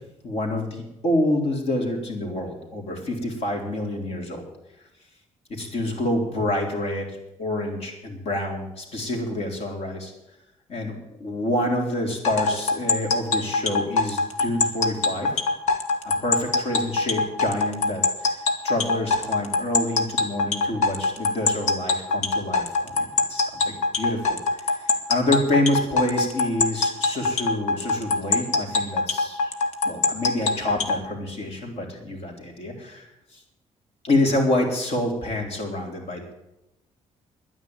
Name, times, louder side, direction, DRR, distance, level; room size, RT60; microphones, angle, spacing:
voice 1, 0.2-4.4 5.5-7.1 7.4-10.1 10.7-10.9 11.2-15.4 16.2-29.5 29.8-33.4 34.0-36.3, left 1 dB, 60° left, 1 dB, 3.8 m, -27 dB
sound 1, 12.2-31.0, left 3 dB, 85° left, 1.6 m, -22 dB
11.0 x 9.7 x 9.2 m, 0.90 s
cardioid pair, 135°, 12 cm